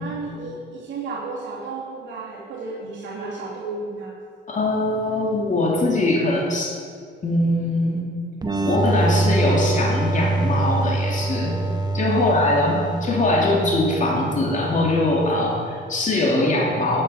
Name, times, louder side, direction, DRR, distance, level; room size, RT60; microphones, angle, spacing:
voice 1, 0.0-4.1 12.2-12.7, right 3 dB, 70° right, -8 dB, 3.0 m, -33 dB
voice 2, 4.5-6.7 7.2-8.1 8.6-11.6 11.9-17.0, left 2 dB, 40° left, -2 dB, 2.6 m, -22 dB
sound 1, 8.4-15.9, right 2 dB, 20° right, 1.0 m, -25 dB
11.0 x 10.0 x 5.8 m, 2.2 s
cardioid pair, 90°, 20 cm